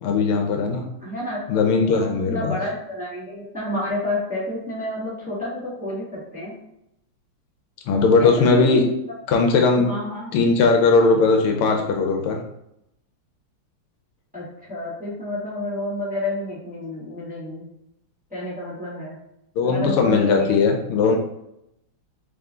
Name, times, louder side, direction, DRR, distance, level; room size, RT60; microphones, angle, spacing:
voice 1, 0.0-0.9 1.5-2.6 7.9-8.8 9.3-9.9 10.3-12.4 19.6-21.2, left 4 dB, 85° left, 3 dB, 1.6 m, -19 dB
voice 2, 1.0-6.5 8.2-8.9 9.7-10.3 14.3-17.6 18.3-19.2 19.6-20.7, left 1 dB, 5° right, -8 dB, 1.2 m, -30 dB
3.6 x 3.5 x 3.7 m, 0.81 s
omnidirectional pair, 2.4 m